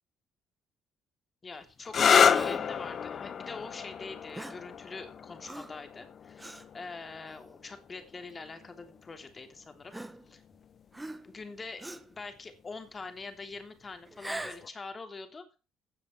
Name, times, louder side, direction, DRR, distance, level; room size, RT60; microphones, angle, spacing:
voice 1, 1.4-9.9 10.3-10.4 11.2-15.4, left 4 dB, 25° left, 6 dB, 3.3 m, -44 dB
sound 1, 1.8-9.3 10.3-10.8 14.3-14.7, left 7 dB, 45° left, 1.0 m, -30 dB
Gasp, 2.3-2.8 4.3-4.7 5.4-5.8 6.4-6.7 7.4-7.5 8.6-8.7 9.9-10.6 10.9-11.4 11.8-12.2 14.1-14.7, right 2 dB, 10° right, 1.3 m, -42 dB
16.0 x 9.7 x 4.6 m, 0.32 s
cardioid pair, 125°, 0 cm